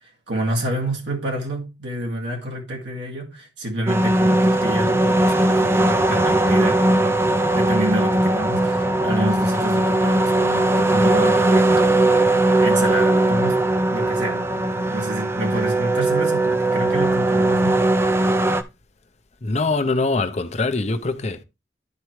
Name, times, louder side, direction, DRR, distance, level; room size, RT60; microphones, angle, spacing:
voice 1, 0.0-7.2 7.5-13.6 13.9-17.8, right 1 dB, 80° right, 2.0 m, -28 dB
sound 1, 3.9-18.6, right 2 dB, 15° right, 0.5 m, -19 dB
voice 2, 19.4-21.4, left 3 dB, 35° left, 0.7 m, -23 dB
12.0 x 4.6 x 3.1 m
head